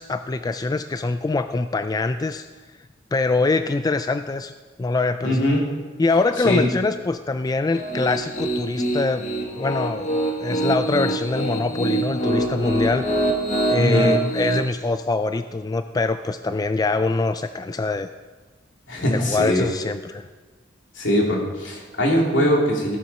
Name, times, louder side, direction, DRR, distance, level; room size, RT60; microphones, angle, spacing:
voice 1, 0.0-2.5 3.1-4.5 4.8-5.5 6.0-9.2 9.5-10.1 10.4-13.1 13.7-18.1 19.0-20.3, left 3 dB, 20° left, 10 dB, 0.3 m, -24 dB
voice 2, 5.2-5.6 6.4-6.7 13.7-14.2 18.9-19.6 20.9-23.0, equal, 75° left, -2 dB, 2.9 m, -21 dB
Piano, 7.7-14.6, right 1 dB, 40° left, 1.6 m, -24 dB
15.5 x 7.8 x 5.5 m, 1.3 s
head